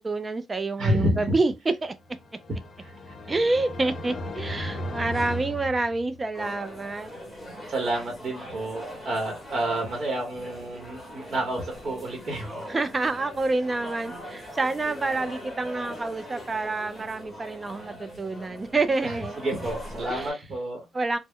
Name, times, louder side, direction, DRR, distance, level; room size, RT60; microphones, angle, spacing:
voice 1, 0.0-1.5 1.8-1.9 3.3-7.1 12.7-19.4 20.1-20.3 20.9-21.2, right 3 dB, 25° right, 0.4 m, -28 dB
voice 2, 0.8-1.3 2.8-2.9 3.2-3.3 7.7-12.7 19.0-20.9, right 1 dB, 45° right, 0.9 m, -29 dB
sound 1, 2.0-6.5, left 1 dB, 40° left, 0.5 m, -36 dB
sound 2, 6.3-20.3, equal, 15° left, 1.0 m, -41 dB
2.1 x 2.0 x 3.5 m
cardioid pair, 90°, 0 cm